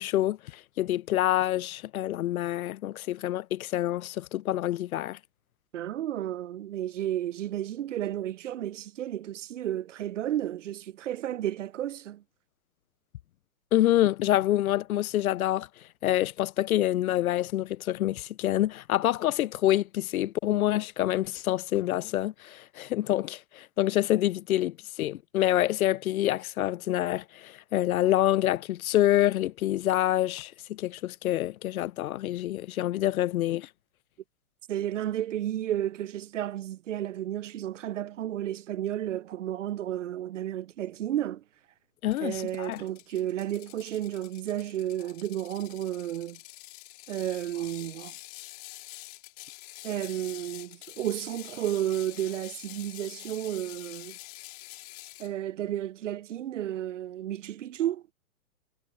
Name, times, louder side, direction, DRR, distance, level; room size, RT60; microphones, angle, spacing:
voice 1, 0.0-5.2 13.7-15.7 16.0-33.7 42.0-42.8, left 14 dB, 75° left, 0.5 m, -27 dB
voice 2, 5.7-12.2 34.7-41.4 42.2-46.4 47.1-48.1 49.8-54.2 55.2-58.0, right 12 dB, 60° right, 0.6 m, -32 dB
Ratchet pawl, 42.1-55.3, left 23 dB, 25° left, 2.2 m, -47 dB
hypercardioid pair, 165°, 43 cm